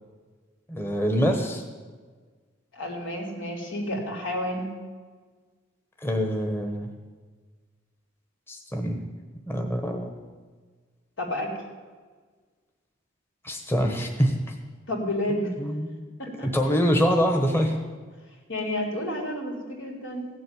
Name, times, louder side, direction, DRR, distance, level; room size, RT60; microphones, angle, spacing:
voice 1, 0.7-1.6 6.0-6.9 8.5-9.0 9.5-10.1 13.4-14.5 15.6-15.9 16.4-17.7, equal, 10° left, 2 dB, 1.2 m, -25 dB
voice 2, 2.7-4.7 11.2-11.5 14.9-15.5 16.2-16.5 18.5-20.3, left 1 dB, 75° left, 1 dB, 3.7 m, -30 dB
16.5 x 7.7 x 9.9 m, 1.5 s
head